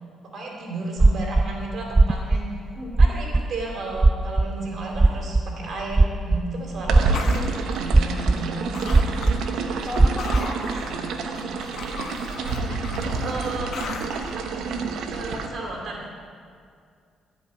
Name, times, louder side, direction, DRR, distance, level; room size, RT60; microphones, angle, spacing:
voice 1, 0.3-2.4 3.0-9.1 10.8-11.5 12.8-13.7 15.1-16.0, right 2 dB, 60° right, -1 dB, 2.7 m, -33 dB
sound 1, 1.0-1.5 1.9-2.5 2.9-3.5 3.9-4.6 4.9-5.6 5.9-6.5 6.8-7.4 7.9-8.5 8.9-9.4 9.9-10.4, right 2 dB, 20° right, 0.3 m, -17 dB
voice 2, 2.8-3.2 9.9-10.7 12.3-12.8, left 1 dB, 20° left, -3 dB, 3.8 m, -35 dB
sound 2, 6.9-15.5, right 4 dB, 80° right, 1.1 m, -29 dB
sound 3, 7.1-8.5 8.7-9.5 9.8-14.3, left 5 dB, 65° left, 1.1 m, -37 dB
14.5 x 5.4 x 8.8 m, 2.2 s
cardioid pair, 90°, 0 cm